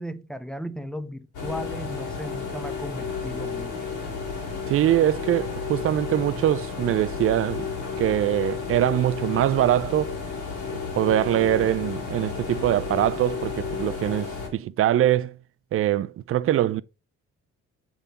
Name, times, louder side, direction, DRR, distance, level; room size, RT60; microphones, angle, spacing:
voice 1, 0.0-3.9, equal, ahead, 0.6 m, -36 dB
sound 1, 1.3-14.5, left 5 dB, 80° left, 3.0 m, -32 dB
voice 2, 4.7-7.7 8.0-10.2 10.7-15.4 15.7-16.8, right 12 dB, 50° right, 0.4 m, -23 dB
7.2 x 3.5 x 3.9 m
cardioid pair, 90°, 30 cm